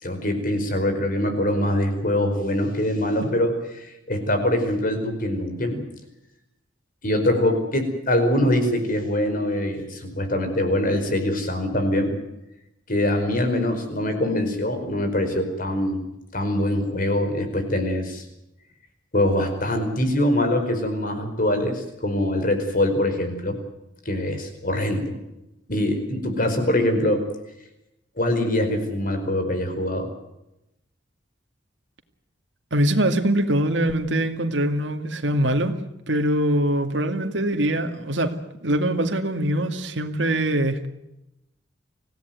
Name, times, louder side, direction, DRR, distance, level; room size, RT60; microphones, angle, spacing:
voice 1, 0.0-5.8 7.0-12.1 12.9-16.0 16.3-18.2 19.1-23.6 24.0-25.2 25.7-27.2 28.2-30.1, left 1 dB, 50° left, 7 dB, 5.0 m, -23 dB
voice 2, 32.7-35.7 36.1-38.3 38.6-40.9, right 1 dB, 80° right, 6 dB, 2.2 m, -23 dB
26.0 x 17.0 x 9.3 m, 0.89 s
head